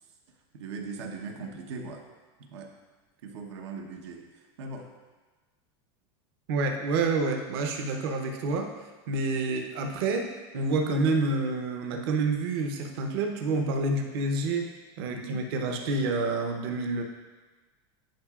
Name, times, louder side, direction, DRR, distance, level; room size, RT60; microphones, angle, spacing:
voice 1, 0.5-2.0 2.5-2.7 3.2-4.2 4.6-4.9 15.1-15.4, right 4 dB, 90° right, 2 dB, 1.0 m, -39 dB
voice 2, 6.5-8.7 9.1-10.3 10.5-14.7 15.0-17.0, right 3 dB, 60° right, 3 dB, 0.8 m, -28 dB
10.5 x 5.0 x 2.4 m, 1.3 s
supercardioid pair, 170°, 14 cm